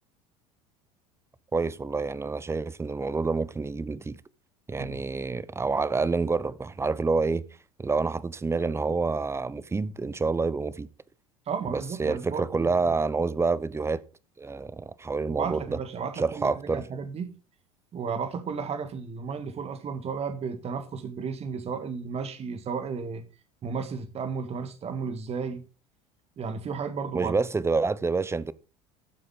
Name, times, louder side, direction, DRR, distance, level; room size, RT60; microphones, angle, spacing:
voice 1, 1.5-4.2 4.7-7.4 7.8-10.9 11.7-14.0 14.4-15.8 16.2-16.8 27.1-28.5, right 4 dB, 15° right, 0.8 m, -28 dB
voice 2, 11.5-13.0 15.3-17.3 17.9-23.2 23.6-25.7 26.4-27.3, right 5 dB, 35° right, 1.9 m, -33 dB
13.0 x 7.7 x 3.8 m
figure-of-eight pair, 70°, 19 cm